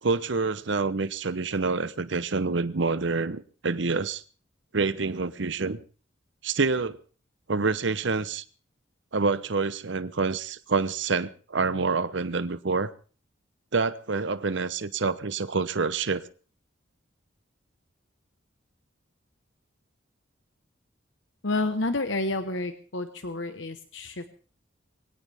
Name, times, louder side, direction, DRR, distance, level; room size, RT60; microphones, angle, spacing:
voice 1, 0.0-4.2 4.7-5.8 6.4-7.0 7.5-8.4 9.1-12.9 13.7-16.2, right 4 dB, 70° right, 0.8 m, -27 dB
voice 2, 21.4-24.3, left 2 dB, 75° left, 1.2 m, -29 dB
22.5 x 17.5 x 3.5 m
head